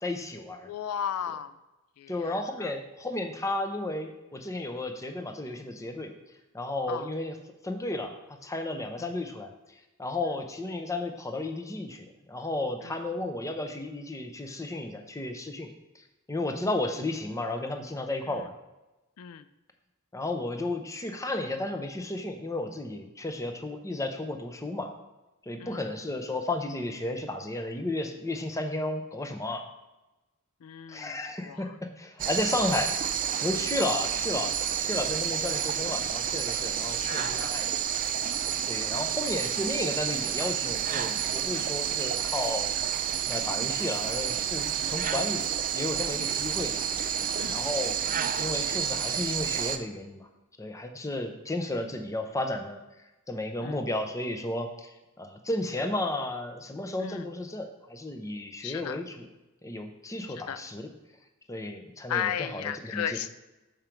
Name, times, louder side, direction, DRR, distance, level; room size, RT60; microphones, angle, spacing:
voice 1, 0.0-0.7 2.1-6.1 6.5-7.4 7.6-9.5 10.0-15.7 15.9-18.5 20.1-24.9 25.5-29.6 30.9-34.5 34.8-37.8 38.7-42.7 43.3-45.5 45.7-46.7 47.5-48.0 48.3-50.3 50.6-52.8 53.3-59.3 59.6-60.9 61.5-63.2, left 2 dB, 15° left, 6 dB, 0.6 m, -33 dB
voice 2, 0.6-1.5 2.0-2.7 6.9-7.1 9.0-9.1 12.8-13.0 18.3-18.4 19.2-19.5 25.6-25.8 30.6-31.2 31.4-31.7 37.0-37.6 41.5-42.0 44.8-45.0 47.4-47.6 53.6-53.8 57.0-57.3 58.6-59.0 60.3-60.6 62.1-63.3, left 9 dB, 80° left, 13 dB, 0.4 m, -36 dB
sound 1, 32.2-49.8, right 8 dB, 40° right, 0.4 m, -30 dB
7.3 x 5.1 x 4.5 m, 1.0 s
head